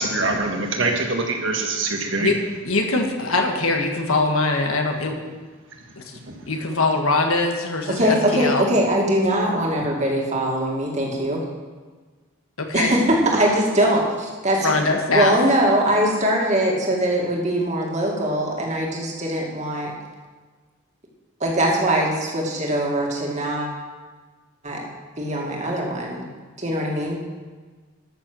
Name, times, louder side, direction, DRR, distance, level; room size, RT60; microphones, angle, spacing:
voice 1, 0.0-2.3 6.3-6.4, right 3 dB, 60° right, 2 dB, 1.6 m, -24 dB
voice 2, 2.6-5.2 6.0-6.1 6.5-8.7 12.6-12.9 14.6-15.3, left 3 dB, 85° left, 3 dB, 1.5 m, -22 dB
voice 3, 8.0-11.4 12.7-14.7 15.1-19.9 21.4-23.7 24.6-24.9 25.2-26.3 26.6-27.2, right 1 dB, 35° right, -1 dB, 2.2 m, -21 dB
13.0 x 6.9 x 6.3 m, 1.4 s
head